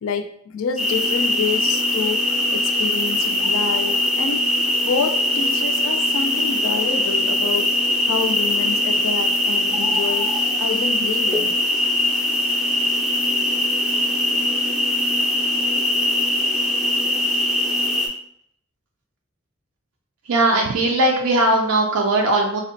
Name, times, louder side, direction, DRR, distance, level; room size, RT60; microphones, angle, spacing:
voice 1, 0.0-4.6 4.8-7.8 8.1-10.3 10.6-11.6, left 5 dB, 65° left, 7 dB, 0.3 m, -28 dB
sound 1, 0.8-18.1, left 1 dB, 5° right, 0.4 m, -21 dB
voice 2, 20.2-22.6, right 2 dB, 85° right, 0 dB, 0.4 m, -19 dB
3.4 x 2.1 x 2.6 m, 0.68 s
head